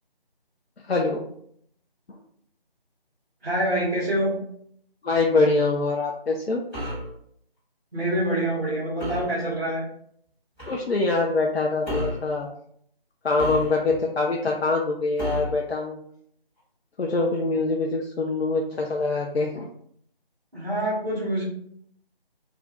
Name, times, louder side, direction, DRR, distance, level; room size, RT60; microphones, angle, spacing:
voice 1, 0.9-1.2 5.0-6.6 10.7-12.5 13.2-16.0 17.0-19.7, left 3 dB, 85° left, 0 dB, 0.5 m, -24 dB
voice 2, 3.4-4.4 7.9-9.9 20.5-21.4, right 1 dB, 5° right, -23 dB, 0.8 m, -26 dB
sound 1, 6.7-7.1 9.0-9.3 10.6-10.8 11.8-12.3 13.4-14.0 15.2-15.6, equal, 15° left, 1.1 m, -31 dB
2.5 x 2.4 x 3.1 m, 0.67 s
figure-of-eight pair, 165°, 30 cm